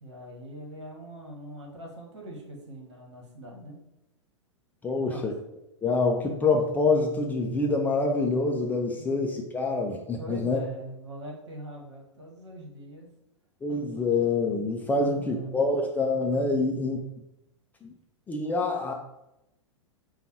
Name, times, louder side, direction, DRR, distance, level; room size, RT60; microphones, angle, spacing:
voice 1, 0.0-3.8 4.9-5.3 9.0-9.2 10.2-13.1 14.9-15.6, right 1 dB, 65° right, 0 dB, 1.4 m, -42 dB
voice 2, 4.8-5.3 5.8-10.6 13.6-17.0 17.8-17.9 18.3-18.9, left 3 dB, 10° left, 1 dB, 0.4 m, -26 dB
5.2 x 2.3 x 4.4 m, 0.87 s
figure-of-eight pair, 100°, 16 cm